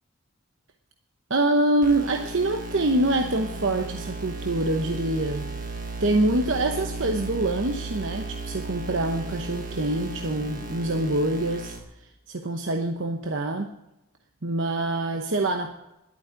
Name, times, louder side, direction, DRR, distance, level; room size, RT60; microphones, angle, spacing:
voice 1, 1.3-5.5 6.0-11.8 12.3-13.7 14.4-15.9, right 2 dB, 60° right, 5 dB, 0.9 m, -25 dB
sound 1, 1.8-11.8, right 2 dB, 40° right, 1.5 m, -35 dB
11.5 x 9.0 x 8.7 m, 0.90 s
head